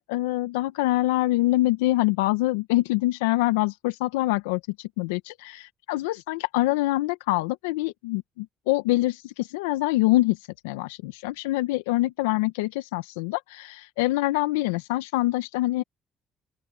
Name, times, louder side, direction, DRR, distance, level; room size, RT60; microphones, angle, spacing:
voice 1, 0.0-10.4 10.6-15.8, left 18 dB, 85° left, 1.4 m, -25 dB
open air
hypercardioid pair, 50°, 0 cm